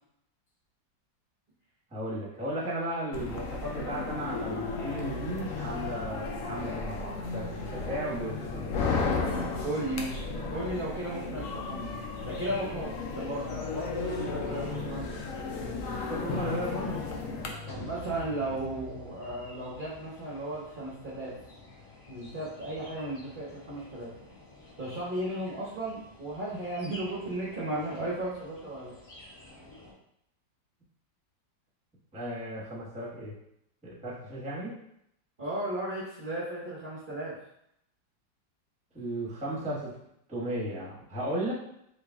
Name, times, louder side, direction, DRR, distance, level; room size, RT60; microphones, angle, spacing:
voice 1, 1.9-8.9 15.9-17.8 32.1-33.3 33.8-34.8 38.9-39.9 40.3-41.5, right 1 dB, 5° right, -6 dB, 0.7 m, -35 dB
sound 1, 3.1-17.5, left 4 dB, 85° left, 0.7 m, -34 dB
voice 2, 9.6-11.9 12.2-15.2 17.7-21.3 22.1-24.1 24.8-28.9 35.4-37.3, right 1 dB, 45° right, -7 dB, 0.6 m, -35 dB
sound 2, 9.7-22.8, equal, 65° left, 1.3 m, -50 dB
sound 3, 11.8-29.9, left 2 dB, 50° left, 1.3 m, -51 dB
3.9 x 2.5 x 3.5 m, 0.75 s
omnidirectional pair, 2.0 m